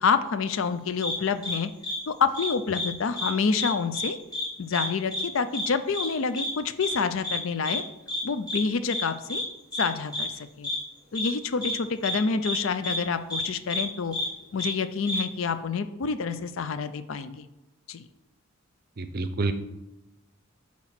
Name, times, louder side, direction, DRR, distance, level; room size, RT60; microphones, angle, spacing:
voice 1, 0.0-1.7 2.1-4.2 4.6-7.8 8.2-9.4 9.8-10.3 10.6-10.7 11.1-14.2 14.5-17.5 17.9-18.1, left 5 dB, 65° left, 12 dB, 0.5 m, -27 dB
sound 1, 1.0-1.1 1.4-1.6 1.8-2.0 2.3-2.9 3.1-3.3 3.5-4.1 4.3-4.5 4.7-4.9 5.1-5.2 5.5-5.7 5.9-6.1 6.3-6.5 6.8-6.9 7.2-7.4 7.6-7.8 8.1-8.2 8.5-8.6 8.9-9.0 9.3-9.4 9.7-9.8 10.1-10.3 10.6-10.8 11.1-11.3 11.6-11.7 12.0-12.2 12.4-12.6 12.8-13.0 13.3-13.4 13.7-13.8 14.1-14.3 14.6-14.7 15.1-15.2, left 1 dB, 20° left, 2.1 m, -30 dB
voice 2, 19.0-19.5, right 3 dB, 45° right, 10 dB, 0.5 m, -28 dB
8.5 x 3.0 x 5.8 m, 0.98 s
head